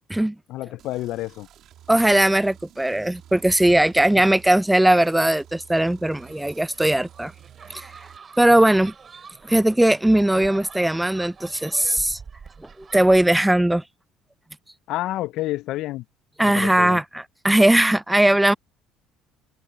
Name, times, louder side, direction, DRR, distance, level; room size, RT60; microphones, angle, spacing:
voice 1, 0.5-1.5 4.1-4.2 14.9-16.0 16.4-17.0, left 16 dB, 65° left, 0.5 m, -29 dB
sound 1, 0.8-8.2, right 11 dB, 60° right, 1.9 m, -50 dB
voice 2, 1.9-7.3 7.7-7.9 8.4-8.9 9.4-12.2 12.8-13.8 16.4-18.5, right 1 dB, 5° right, 0.4 m, -19 dB
sound 2, 6.1-13.2, right 6 dB, 30° right, 3.3 m, -45 dB
cardioid pair, 105°, 0 cm